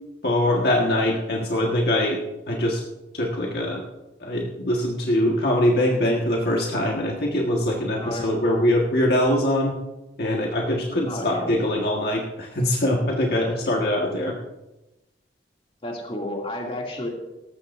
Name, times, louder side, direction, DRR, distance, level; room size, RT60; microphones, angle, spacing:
voice 1, 0.2-2.2 2.5-2.8 3.1-3.8 4.2-9.8 10.2-14.3, left 1 dB, 60° left, -1 dB, 1.6 m, -23 dB
voice 2, 11.0-11.5 15.8-17.1, left 1 dB, 35° left, -1 dB, 2.6 m, -31 dB
18.0 x 14.5 x 2.7 m, 1.0 s
head